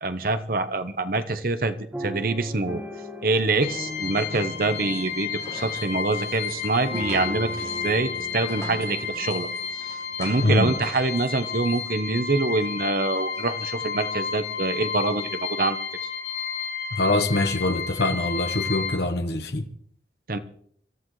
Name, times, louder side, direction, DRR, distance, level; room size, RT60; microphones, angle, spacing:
voice 1, 0.0-2.8 3.2-9.5 10.2-15.8 20.3-20.4, right 3 dB, 50° right, 0.9 m, -25 dB
sound 1, 1.9-10.0 10.6-10.7 11.0-11.3, equal, 10° right, 1.6 m, -39 dB
sound 2, 3.6-19.0, left 6 dB, 35° left, 4.2 m, -32 dB
sound 3, 3.7-14.1, left 2 dB, 15° left, 6.1 m, -46 dB
voice 2, 10.4-10.8 16.9-19.6, left 2 dB, 65° left, 1.2 m, -24 dB
24.5 x 14.0 x 3.2 m
head